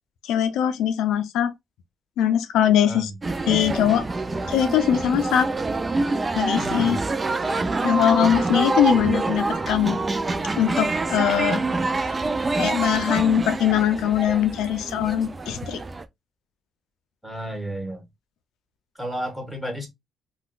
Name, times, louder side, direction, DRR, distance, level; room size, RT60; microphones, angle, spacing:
voice 1, 0.2-1.5 2.2-3.1 3.5-4.0 4.5-5.5 6.3-7.0 7.8-10.0 10.6-11.6 12.6-15.8, left 10 dB, 90° left, 0.4 m, -21 dB
sound 1, 3.2-16.0, right 3 dB, 25° right, 0.4 m, -26 dB
voice 2, 6.6-7.0 17.2-18.0 19.0-19.9, right 1 dB, 5° right, 1.4 m, -32 dB
3.7 x 2.3 x 2.3 m
cardioid pair, 90°, 0 cm